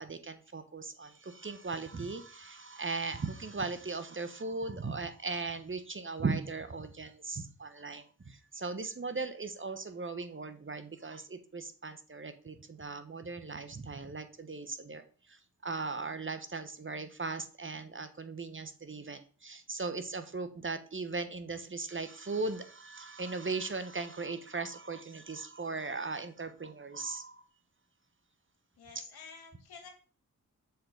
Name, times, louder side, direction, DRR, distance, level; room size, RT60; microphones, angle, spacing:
voice 1, 0.0-15.0 15.3-27.4 28.9-29.0, right 3 dB, 35° right, 10 dB, 1.0 m, -38 dB
voice 2, 28.8-29.9, left 5 dB, 85° left, 3 dB, 2.2 m, -50 dB
7.0 x 3.9 x 5.1 m, 0.40 s
cardioid pair, 45°, 37 cm